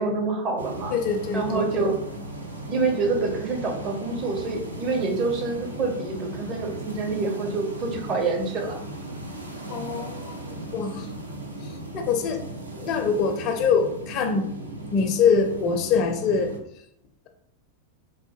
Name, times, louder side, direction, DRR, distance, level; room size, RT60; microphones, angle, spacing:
voice 1, 0.0-0.9 1.3-2.0 2.7-8.8, right 3 dB, 35° right, 2 dB, 0.7 m, -26 dB
sound 1, 0.6-16.6, right 1 dB, 80° right, 0.5 m, -37 dB
voice 2, 0.9-1.9 9.7-10.4 10.7-11.1 11.6-12.4 12.8-14.5 14.9-16.5, left 5 dB, 40° left, 5 dB, 0.4 m, -24 dB
3.5 x 2.1 x 3.3 m, 0.73 s
figure-of-eight pair, 90°, 0 cm